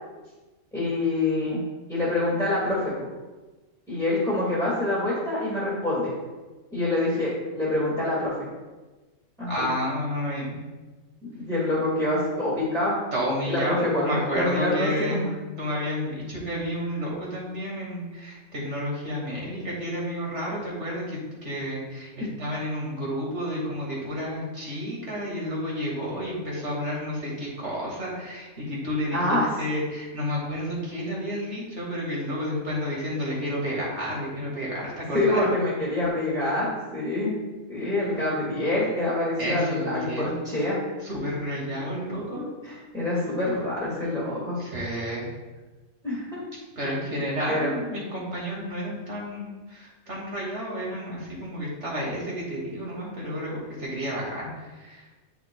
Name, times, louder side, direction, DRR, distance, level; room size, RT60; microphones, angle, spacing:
voice 1, 0.7-1.6 1.9-2.9 3.9-6.1 6.7-8.3 9.4-9.5 11.2-13.0 13.5-15.3 22.2-22.3 29.1-29.5 35.1-37.3 37.7-40.8 42.6-44.6 46.0-46.4 46.8-47.2 47.5-47.7, left 2 dB, 5° left, -8 dB, 1.6 m, -26 dB
voice 2, 9.5-10.6 13.1-15.3 15.6-35.5 39.4-40.3 41.0-42.5 44.6-45.3 46.8-55.1, equal, 55° right, -4 dB, 2.3 m, -31 dB
8.7 x 5.9 x 2.2 m, 1.2 s
omnidirectional pair, 1.4 m